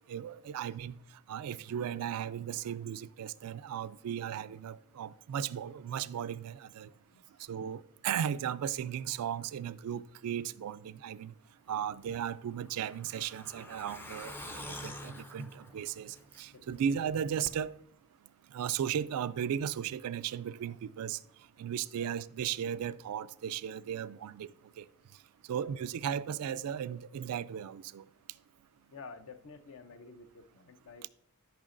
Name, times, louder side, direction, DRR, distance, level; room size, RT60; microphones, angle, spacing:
voice 1, 0.1-0.9 1.3-6.9 7.5-11.3 11.7-17.7 18.5-21.2 21.6-24.5 24.8-24.9 25.5-28.0, right 9 dB, 80° right, 0.3 m, -36 dB
Truck, 12.1-16.7 17.0-17.1 17.5-17.6, left 1 dB, 10° left, 0.4 m, -46 dB
voice 2, 16.5-16.8 21.9-22.2 25.5-25.7 28.9-31.1, left 4 dB, 60° left, 0.6 m, -51 dB
12.5 x 5.8 x 2.5 m
head